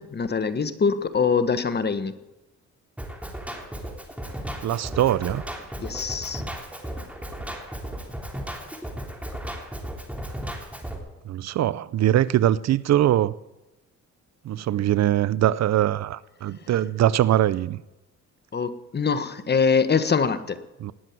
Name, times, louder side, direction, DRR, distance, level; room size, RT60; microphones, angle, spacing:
voice 1, 0.0-2.1 5.8-6.4 18.5-20.6, left 5 dB, 35° left, 1.2 m, -24 dB
Drum kit, 3.0-11.0, right 1 dB, 5° right, 3.6 m, -35 dB
voice 2, 4.6-5.4 11.3-13.4 14.4-17.8 20.8-20.9, right 12 dB, 60° right, 0.6 m, -22 dB
19.0 x 7.5 x 9.4 m
cardioid pair, 90°, 30 cm